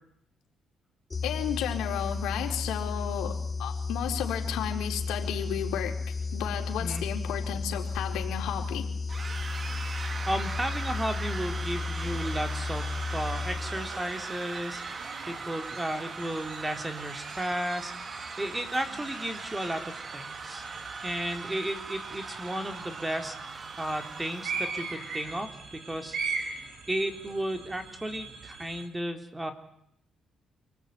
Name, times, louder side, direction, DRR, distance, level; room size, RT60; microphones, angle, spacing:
sound 1, 1.1-14.2, left 4 dB, 25° left, 3.1 m, -33 dB
voice 1, 1.2-8.9, left 9 dB, 85° left, 3 dB, 4.3 m, -33 dB
sound 2, 9.1-25.4, right 4 dB, 40° right, 1.8 m, -40 dB
voice 2, 10.3-20.7 21.0-29.5, right 1 dB, 15° right, 6 dB, 3.7 m, -34 dB
sound 3, 11.5-28.8, right 4 dB, 70° right, 7.9 m, -42 dB
28.5 x 20.0 x 9.5 m, 0.73 s
cardioid pair, 90°, 0 cm